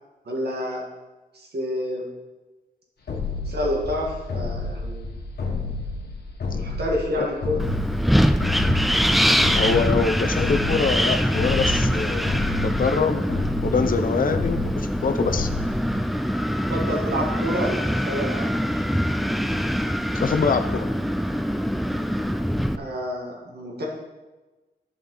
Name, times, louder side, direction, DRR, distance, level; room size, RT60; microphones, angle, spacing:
voice 1, 0.3-0.9 1.3-2.1 3.5-5.2 6.5-7.7 16.7-18.8 22.8-23.9, equal, 75° right, -2 dB, 2.0 m, -29 dB
sound 1, 3.1-16.2, left 3 dB, 75° left, 1.4 m, -30 dB
Wind, 7.6-22.8, equal, ahead, 0.3 m, -23 dB
voice 2, 9.5-12.3 12.6-13.2 13.6-15.5 20.1-20.9, left 5 dB, 55° left, 9 dB, 0.6 m, -24 dB
12.5 x 5.1 x 3.9 m, 1.2 s
wide cardioid pair, 145°, 17 cm